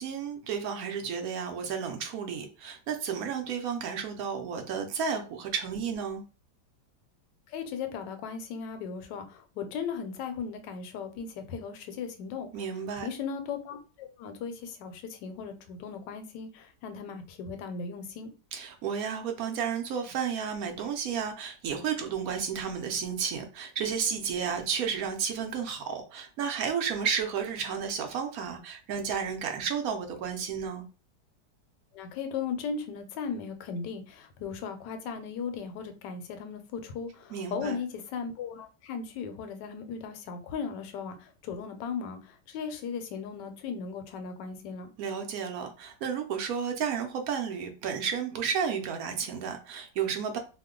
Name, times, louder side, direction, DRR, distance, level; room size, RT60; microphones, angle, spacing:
voice 1, 0.0-6.2 12.5-13.1 18.5-30.9 37.3-37.8 45.0-50.4, right 7 dB, 70° right, 0.9 m, -32 dB
voice 2, 7.5-18.3 31.9-44.9, left 6 dB, 85° left, 1.2 m, -37 dB
2.8 x 2.1 x 3.6 m
omnidirectional pair, 1.8 m